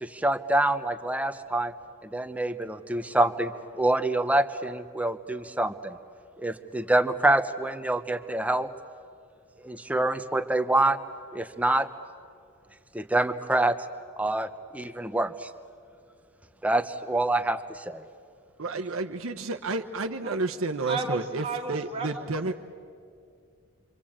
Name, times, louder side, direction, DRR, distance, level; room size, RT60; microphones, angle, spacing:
voice 1, 0.0-1.7 2.0-6.0 6.4-8.7 9.6-11.0 11.3-11.9 12.9-13.8 14.2-15.5 16.6-18.0, right 2 dB, 5° right, 9 dB, 0.7 m, -26 dB
voice 2, 18.6-22.5, right 3 dB, 75° right, 4 dB, 0.9 m, -31 dB
voice 3, 20.9-22.1 22.5-22.6, right 3 dB, 25° right, 2 dB, 2.0 m, -32 dB
27.0 x 25.0 x 8.8 m, 2.3 s
head